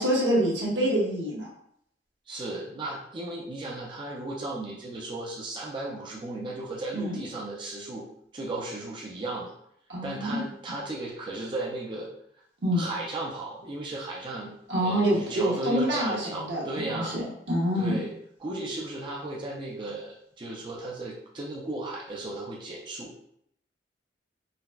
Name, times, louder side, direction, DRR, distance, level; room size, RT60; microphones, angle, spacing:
voice 1, 0.0-1.5 6.9-7.2 9.9-10.4 12.6-12.8 14.7-18.0, equal, 80° right, -6 dB, 1.1 m, -26 dB
voice 2, 2.3-8.1 8.3-9.5 10.0-12.1 12.7-14.5 14.8-17.2 17.8-18.1 18.4-23.1, right 2 dB, 25° right, -3 dB, 0.4 m, -35 dB
4.0 x 2.1 x 2.2 m, 0.71 s
head